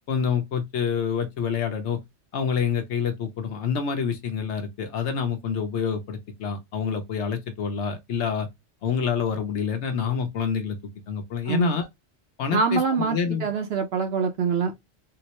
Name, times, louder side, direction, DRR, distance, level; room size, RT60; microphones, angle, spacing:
voice 1, 0.1-2.0 2.3-8.5 8.8-10.8 11.1-11.9 12.4-13.5, left 7 dB, 65° left, 1.0 m, -27 dB
voice 2, 11.5-11.8 12.5-14.7, right 5 dB, 60° right, 0.7 m, -25 dB
3.8 x 2.1 x 2.8 m
omnidirectional pair, 1.3 m